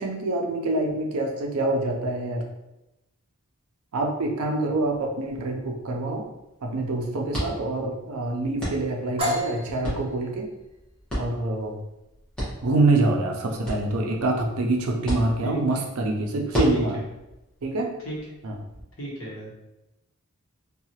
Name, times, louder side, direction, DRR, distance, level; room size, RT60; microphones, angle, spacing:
voice 1, 0.0-2.4 3.9-6.2 6.6-10.5 11.1-11.8 12.6-17.0 17.6-17.9 18.4-18.6, right 2 dB, 80° right, 1 dB, 0.5 m, -26 dB
sound 1, 4.7-18.8, equal, 5° left, 0.9 m, -36 dB
sound 2, 9.2-16.8, equal, 25° right, 0.7 m, -36 dB
voice 2, 16.5-17.0 18.0-18.2 19.0-19.5, right 1 dB, 65° left, -4 dB, 1.0 m, -35 dB
2.7 x 2.3 x 2.8 m, 0.93 s
head